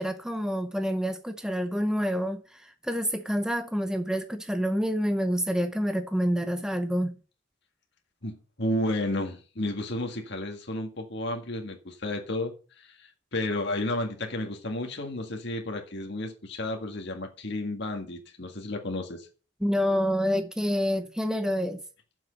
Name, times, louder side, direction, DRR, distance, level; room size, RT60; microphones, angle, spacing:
voice 1, 0.0-7.1 19.6-21.8, equal, 5° right, 0.7 m, -27 dB
voice 2, 8.2-19.3, left 1 dB, 60° left, 1.8 m, -32 dB
7.4 x 6.2 x 7.6 m
head